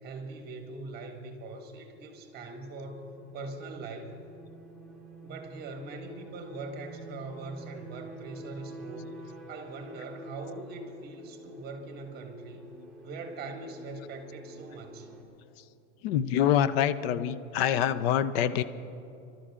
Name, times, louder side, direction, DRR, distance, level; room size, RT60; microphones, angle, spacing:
voice 1, 0.0-4.2 5.2-12.6 13.0-15.1, right 3 dB, 25° right, 4 dB, 1.9 m, -42 dB
sound 1, 1.0-15.2, right 2 dB, 5° left, 3.3 m, -49 dB
voice 2, 16.0-18.6, left 10 dB, 55° left, 15 dB, 0.7 m, -25 dB
24.0 x 13.0 x 3.8 m, 2.8 s
supercardioid pair, 140°, 36 cm